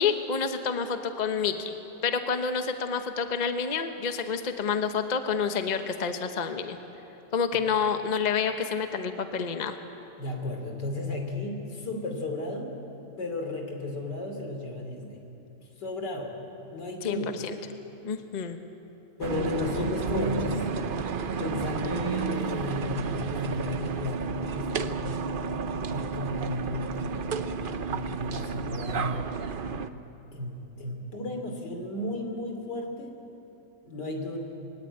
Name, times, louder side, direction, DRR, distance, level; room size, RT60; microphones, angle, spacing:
voice 1, 0.0-1.7 2.0-6.8 7.3-9.8 17.0-17.6 18.0-18.6, left 6 dB, 30° left, 7 dB, 0.9 m, -28 dB
voice 2, 10.2-12.7 13.2-15.2 15.8-16.4 16.7-17.3 19.2-20.7 21.0-21.1 21.4-25.6 25.8-27.4 27.8-29.3 30.3-33.2 33.8-34.4, left 2 dB, 80° left, 3 dB, 3.4 m, -34 dB
sound 1, 19.2-29.9, right 5 dB, 60° right, 0.5 m, -32 dB
22.0 x 17.0 x 9.7 m, 2.9 s
omnidirectional pair, 1.8 m